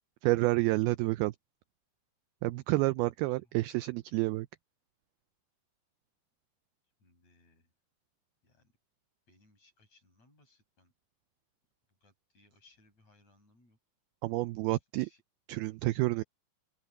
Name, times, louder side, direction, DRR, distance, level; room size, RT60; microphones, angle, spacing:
voice 1, 0.2-1.4 2.4-4.5 14.2-15.1 15.5-16.2, right 20 dB, 85° right, 2.2 m, -29 dB
voice 2, 7.0-7.7 8.4-8.7 9.3-10.9 12.0-13.8 15.0-15.2, left 2 dB, 40° left, 8.4 m, -66 dB
open air
omnidirectional pair, 4.9 m